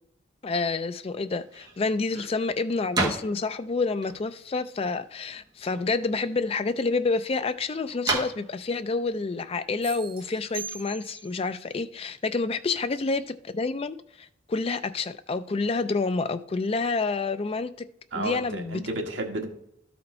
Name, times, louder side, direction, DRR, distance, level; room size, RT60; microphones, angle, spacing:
voice 1, 0.4-17.7 18.1-18.8, left 3 dB, 30° left, 0.4 m, -28 dB
sound 1, 1.3-10.5, right 3 dB, 20° right, 1.2 m, -36 dB
sound 2, 9.8-11.5, right 6 dB, 55° right, 2.1 m, -40 dB
voice 2, 18.1-19.5, right 2 dB, 75° right, 1.4 m, -32 dB
12.5 x 4.3 x 4.3 m
head